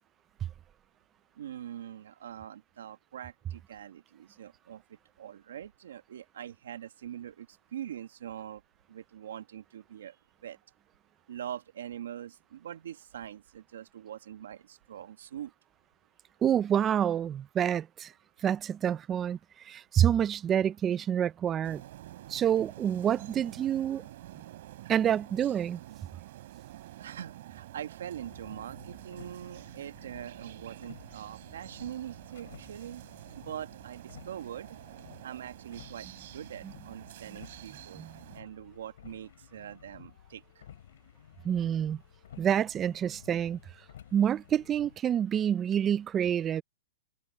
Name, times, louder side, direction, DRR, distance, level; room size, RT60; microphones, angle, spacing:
voice 1, 1.4-4.8 5.2-8.6 8.9-10.2 10.4-10.6 11.3-15.5 27.0-33.0 33.4-34.8 35.2-36.1 36.3-38.0 38.3-40.4, right 10 dB, 75° right, 1.8 m, -43 dB
voice 2, 16.4-18.1 18.4-19.4 19.6-21.8 22.3-24.1 24.9-25.8 36.6-36.7 37.9-38.1 41.4-42.0 42.4-43.6 44.1-46.6, right 9 dB, 15° right, 0.5 m, -27 dB
sound 1, 21.6-38.4, right 14 dB, 55° right, 4.0 m, -48 dB
sound 2, 28.1-45.0, left 10 dB, 70° left, 3.5 m, -54 dB
hypercardioid pair, 160°, 0 cm